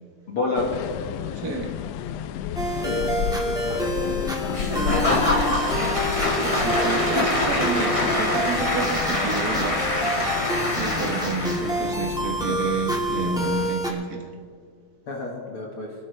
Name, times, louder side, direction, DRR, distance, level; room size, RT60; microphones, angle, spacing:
voice 1, 0.3-0.7 2.8-3.1 3.6-4.3 15.1-15.9, left 3 dB, 50° left, -2 dB, 2.2 m, -29 dB
sound 1, 0.6-13.7, left 10 dB, 85° left, 1.4 m, -32 dB
voice 2, 1.4-1.8 6.4-9.9 10.7-14.3, right 4 dB, 65° right, 2 dB, 0.9 m, -30 dB
sound 2, 2.5-13.9, right 1 dB, 5° right, 0.7 m, -29 dB
Applause / Crowd, 4.5-11.8, left 1 dB, 30° left, 0.5 m, -25 dB
24.5 x 12.5 x 3.3 m, 2.2 s
omnidirectional pair, 3.6 m